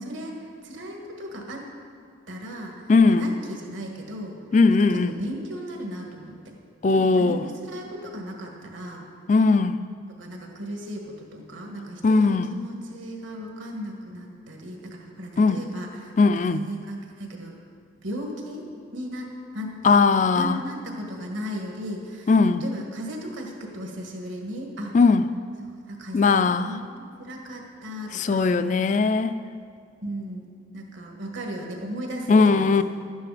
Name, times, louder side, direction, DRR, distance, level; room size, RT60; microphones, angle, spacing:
voice 1, 0.0-1.7 2.3-4.4 4.7-6.5 6.9-9.1 10.2-17.6 18.0-18.6 18.9-19.8 20.1-22.3 22.6-24.9 25.6-28.6 30.0-30.5 30.7-32.8, equal, 70° right, 1 dB, 1.7 m, -36 dB
voice 2, 2.9-3.3 4.5-5.1 6.8-7.4 9.3-9.8 12.0-12.5 15.4-15.6 16.2-16.6 19.8-20.6 22.3-22.6 24.9-25.2 26.1-26.7 28.1-29.4 32.3-32.8, left 4 dB, 40° left, 12 dB, 0.3 m, -19 dB
12.0 x 9.3 x 5.0 m, 2.2 s
head